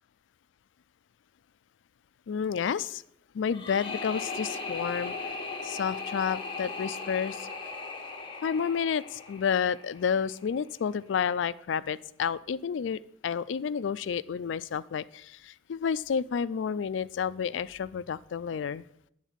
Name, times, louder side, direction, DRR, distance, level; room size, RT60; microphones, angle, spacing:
voice 1, 2.3-3.0 3.3-5.1 5.6-7.5 8.4-18.8, left 7 dB, 90° left, 17 dB, 0.4 m, -30 dB
sound 1, 3.5-10.5, left 4 dB, 30° left, 1.2 m, -38 dB
10.0 x 4.0 x 7.3 m, 0.72 s
head